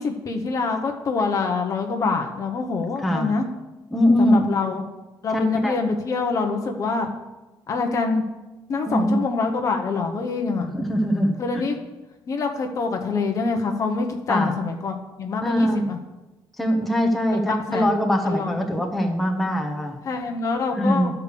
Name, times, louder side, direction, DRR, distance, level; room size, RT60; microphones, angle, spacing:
voice 1, 0.0-3.5 4.2-4.8 5.2-7.1 7.7-8.2 8.7-10.7 11.4-11.8 12.3-16.0 17.5-17.9 18.2-18.6 20.0-21.1, left 4 dB, 40° left, 3 dB, 0.9 m, -25 dB
voice 2, 3.0-3.3 3.9-4.5 5.3-5.8 8.9-9.2 10.6-11.6 14.3-14.5 15.4-15.8 16.6-20.0 20.7-21.1, equal, ahead, 1 dB, 1.0 m, -22 dB
11.5 x 4.8 x 6.8 m, 1.1 s
cardioid pair, 155°, 9 cm